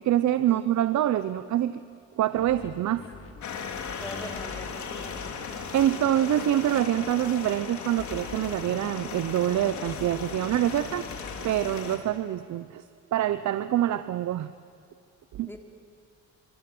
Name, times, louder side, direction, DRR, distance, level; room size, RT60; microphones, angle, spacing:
voice 1, 0.0-1.8 2.2-3.1 5.7-11.1 11.4-12.8 13.1-14.5 15.3-15.6, right 12 dB, 70° right, 13 dB, 0.9 m, -25 dB
sound 1, 2.4-5.8 8.0-11.8, left 3 dB, 50° left, 4.6 m, -45 dB
sound 2, 3.4-12.0, left 6 dB, 70° left, 3.8 m, -37 dB
voice 2, 4.0-5.4 15.5-15.6, left 1 dB, 10° left, 3 dB, 3.8 m, -44 dB
28.0 x 25.0 x 7.9 m, 2.4 s
cardioid pair, 90°, 30 cm